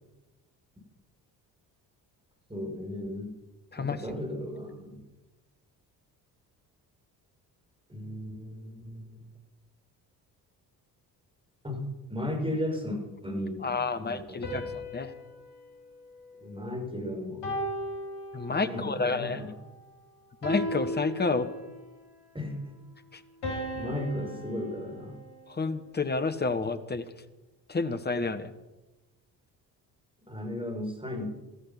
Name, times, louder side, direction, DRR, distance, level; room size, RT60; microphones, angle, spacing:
voice 1, 2.5-3.3 3.8-5.0 7.9-9.2 11.6-11.8 12.1-14.8 16.4-17.5 18.5-19.6 22.3-22.7 23.7-25.2 30.3-31.3, left 1 dB, 10° right, 0 dB, 6.2 m, -35 dB
voice 2, 13.6-14.6 14.9-15.1 18.3-19.4 20.4-21.5 23.1-23.2 25.5-27.0 27.7-28.5, left 4 dB, 20° left, 10 dB, 1.4 m, -29 dB
sound 1, 14.4-16.8 17.4-18.9 20.4-21.9 23.4-25.7, equal, 55° left, 5.7 m, -37 dB
15.0 x 14.0 x 5.9 m, 1.0 s
figure-of-eight pair, 45°, 50 cm